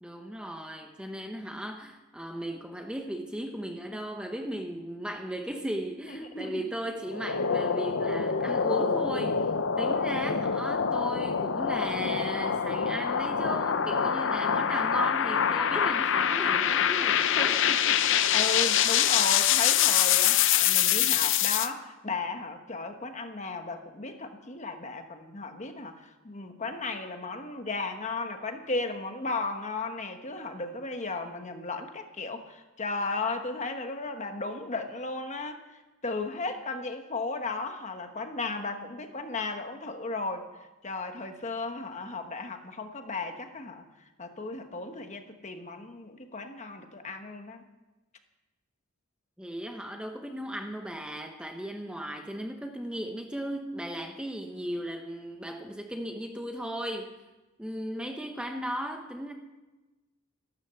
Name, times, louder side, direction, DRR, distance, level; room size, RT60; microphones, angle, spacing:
voice 1, 0.0-9.5 9.8-17.5 17.8-18.2 49.4-57.1 57.6-59.3, equal, 5° right, 4 dB, 0.9 m, -36 dB
voice 2, 6.1-6.7 17.1-17.8 18.3-40.5 40.8-47.6, left 3 dB, 30° left, 6 dB, 1.2 m, -35 dB
sound 1, 7.1-21.7, left 8 dB, 55° left, 0.6 m, -25 dB
13.5 x 12.5 x 6.9 m, 1.1 s
head